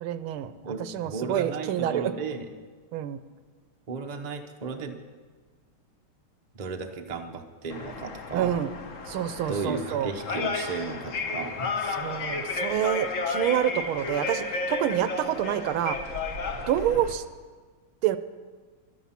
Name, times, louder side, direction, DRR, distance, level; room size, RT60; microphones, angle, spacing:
voice 1, 0.0-0.5 0.9-2.0 2.9-3.2 8.3-8.7 9.1-10.1 12.0-16.0 16.7-17.2 18.0-18.2, right 11 dB, 80° right, 12 dB, 1.5 m, -27 dB
voice 2, 0.6-2.5 3.9-5.0 6.5-8.6 9.5-11.8, right 4 dB, 45° right, 4 dB, 0.5 m, -34 dB
sound 1, 7.7-17.1, left 3 dB, 45° left, 1.1 m, -33 dB
14.5 x 11.5 x 5.8 m, 1.5 s
omnidirectional pair, 2.4 m